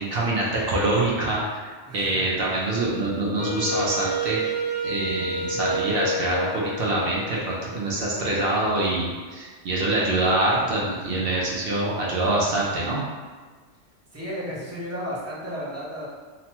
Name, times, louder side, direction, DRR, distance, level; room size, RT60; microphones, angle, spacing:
voice 1, 0.0-1.6 1.9-4.4 4.8-13.0, right 2 dB, 60° right, -5 dB, 0.7 m, -25 dB
voice 2, 1.9-2.3 14.1-16.1, equal, 20° right, -7 dB, 0.4 m, -33 dB
Wind instrument woodwind instrument, 3.4-8.3, right 1 dB, 75° left, 0.9 m, -30 dB
2.9 x 2.1 x 2.8 m, 1.5 s
omnidirectional pair, 1.2 m